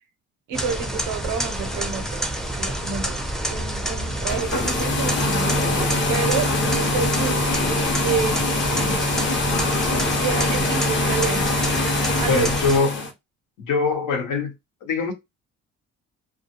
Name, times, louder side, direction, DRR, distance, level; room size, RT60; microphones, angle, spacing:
sound 1, 0.5-12.8, right 1 dB, ahead, 0.4 m, -28 dB
voice 1, 0.5-7.4 8.0-9.3 10.2-11.6 12.2-12.5, right 5 dB, 85° right, 0.6 m, -29 dB
sound 2, 4.2-13.1, left 2 dB, 40° left, 0.7 m, -23 dB
voice 2, 12.3-13.1 13.6-14.5 14.8-15.1, left 4 dB, 85° left, 0.9 m, -23 dB
2.3 x 2.1 x 2.8 m
cardioid pair, 90°, 30 cm